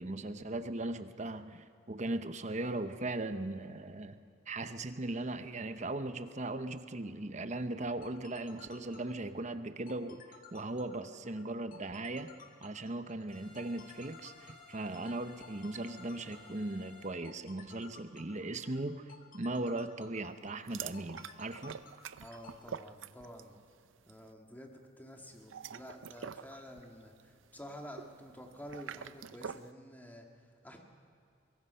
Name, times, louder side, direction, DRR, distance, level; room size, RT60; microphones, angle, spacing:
voice 1, 0.0-4.2 4.5-10.2 10.5-12.3 12.6-19.0 19.3-21.8, right 2 dB, 35° right, 10 dB, 0.9 m, -38 dB
sound 1, 7.8-22.5, left 5 dB, 45° left, 1.8 m, -56 dB
sound 2, 13.3-17.1, left 3 dB, 25° left, 6.9 m, -57 dB
sound 3, 20.7-23.6 23.9-24.2 25.3-29.7, right 7 dB, 75° right, 0.6 m, -46 dB
voice 2, 22.2-23.6 24.1-30.8, equal, 10° left, 2 dB, 2.0 m, -50 dB
23.5 x 22.5 x 5.6 m, 2.5 s
head